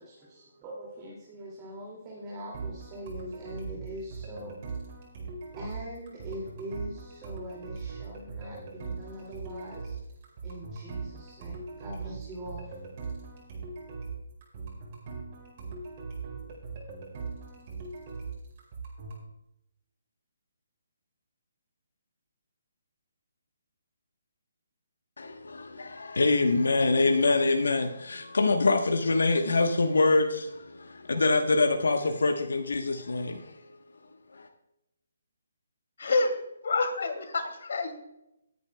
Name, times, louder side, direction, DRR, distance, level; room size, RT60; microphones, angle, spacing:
voice 1, 0.0-4.6 5.5-10.0 10.4-12.8, equal, 20° right, -4 dB, 2.6 m, -42 dB
sound 1, 2.5-19.2, right 4 dB, 35° right, 4.9 m, -40 dB
voice 2, 25.2-33.8 34.3-34.5, left 3 dB, 85° left, 4 dB, 1.2 m, -25 dB
voice 3, 36.6-37.9, left 3 dB, 65° left, 6 dB, 2.5 m, -27 dB
20.5 x 9.5 x 2.3 m, 0.86 s
hypercardioid pair, 160°, 0 cm